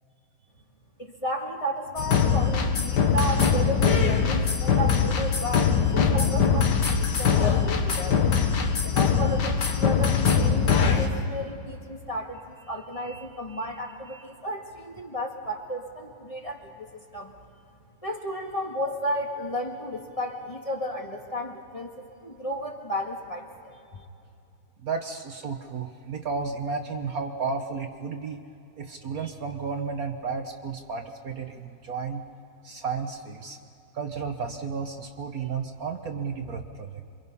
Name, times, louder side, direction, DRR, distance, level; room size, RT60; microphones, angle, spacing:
voice 1, 1.0-8.3 8.8-17.3 18.0-21.9 22.2-24.0, equal, 20° left, 0 dB, 1.8 m, -33 dB
sound 1, 2.0-11.1, left 6 dB, 65° left, 1.9 m, -22 dB
voice 2, 24.8-28.4 28.8-32.2 32.6-33.6 33.9-37.0, right 5 dB, 55° right, 5 dB, 1.4 m, -33 dB
28.0 x 24.5 x 5.5 m, 2.6 s
omnidirectional pair, 2.0 m